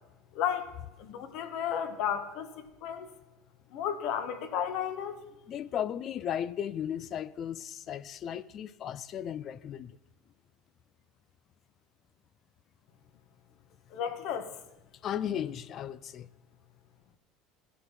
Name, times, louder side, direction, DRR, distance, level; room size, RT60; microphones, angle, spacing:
voice 1, 0.3-0.7 1.0-3.1 3.7-5.2 13.9-14.5, left 8 dB, 55° left, 1.7 m, -33 dB
voice 2, 5.5-9.9 15.0-16.3, left 9 dB, 35° left, 0.6 m, -35 dB
16.5 x 11.5 x 5.9 m
cardioid pair, 150°, 0 cm